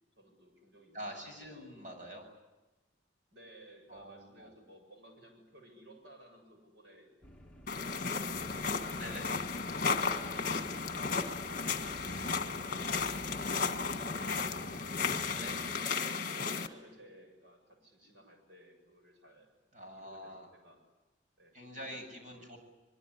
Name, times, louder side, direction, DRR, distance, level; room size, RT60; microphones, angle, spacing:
voice 1, 0.2-1.7 3.3-7.1 7.9-9.2 9.5-9.7 10.1-12.3 12.7-15.3 16.1-19.5 19.8-20.8 21.4-22.1 22.4-22.6, right 1 dB, 65° right, 4 dB, 7.7 m, -57 dB
voice 2, 0.9-2.3 3.9-4.5 8.9-9.4 15.4-15.6 19.7-20.5 21.5-22.6, equal, 40° right, 3 dB, 7.4 m, -46 dB
sound 1, 7.2-15.8, equal, 5° left, 2.0 m, -51 dB
sound 2, 7.7-16.7, left 5 dB, 45° left, 1.6 m, -34 dB
24.0 x 23.0 x 9.9 m, 1.1 s
head